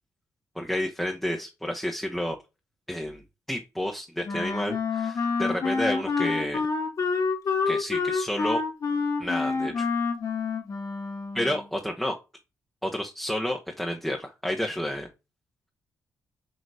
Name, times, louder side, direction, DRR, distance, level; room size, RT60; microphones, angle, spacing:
voice 1, 0.6-2.4 2.9-3.2 3.5-6.6 7.7-8.6 9.2-9.9 11.3-12.2 12.8-15.1, left 1 dB, 5° left, 1 dB, 1.1 m, -30 dB
Wind instrument woodwind instrument, 4.2-11.6, left 4 dB, 55° left, 1.9 m, -28 dB
6.7 x 3.0 x 4.8 m, 0.27 s
cardioid pair, 65°, 7 cm